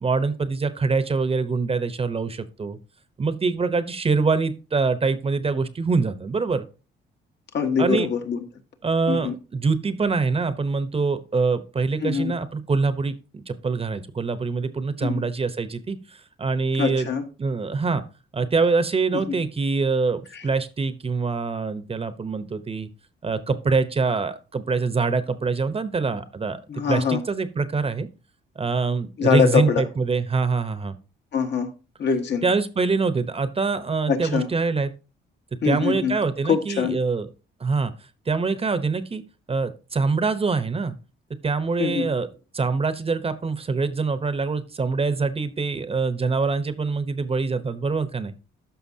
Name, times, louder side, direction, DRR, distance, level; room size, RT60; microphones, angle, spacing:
voice 1, 0.0-2.8 3.2-6.6 7.8-8.1 8.8-16.0 16.4-17.1 17.4-18.0 18.3-22.9 23.2-26.6 26.9-28.1 28.6-30.9 32.4-34.9 35.6-37.3 37.6-37.9 38.3-39.2 39.5-41.0 41.4-42.3 42.5-48.3, right 4 dB, 30° right, 0.8 m, -24 dB
voice 2, 7.5-8.4 9.1-9.3 12.0-12.3 15.0-15.2 16.8-17.2 20.3-20.4 26.7-27.2 29.2-29.8 31.3-31.7 32.0-32.4 34.1-34.5 35.6-36.2 36.5-37.0 41.8-42.1, left 6 dB, 60° left, 1.5 m, -23 dB
13.0 x 5.6 x 2.8 m
cardioid pair, 90°, 20 cm